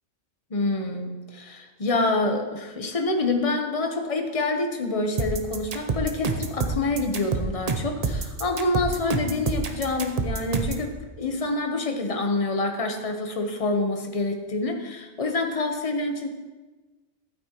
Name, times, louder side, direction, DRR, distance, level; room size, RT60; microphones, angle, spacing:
voice 1, 0.5-16.3, left 2 dB, 30° left, 4 dB, 0.9 m, -27 dB
sound 1, 5.2-10.9, right 4 dB, 40° right, 0.6 m, -27 dB
12.5 x 8.9 x 3.0 m, 1.2 s
omnidirectional pair, 1.3 m